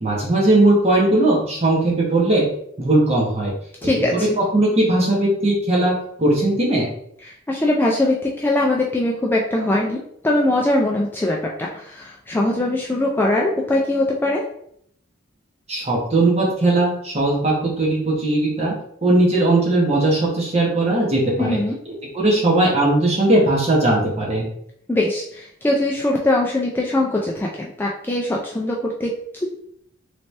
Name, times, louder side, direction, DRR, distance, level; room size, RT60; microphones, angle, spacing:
voice 1, 0.0-2.5 2.8-3.5 3.8-3.9 4.4-6.9 15.7-18.7 19.0-21.6 22.1-24.5, right 2 dB, 30° right, -4 dB, 1.1 m, -18 dB
voice 2, 3.8-4.3 7.2-14.4 21.4-21.7 24.9-29.5, left 1 dB, 10° left, -2 dB, 0.3 m, -21 dB
3.1 x 2.8 x 3.2 m, 0.69 s
head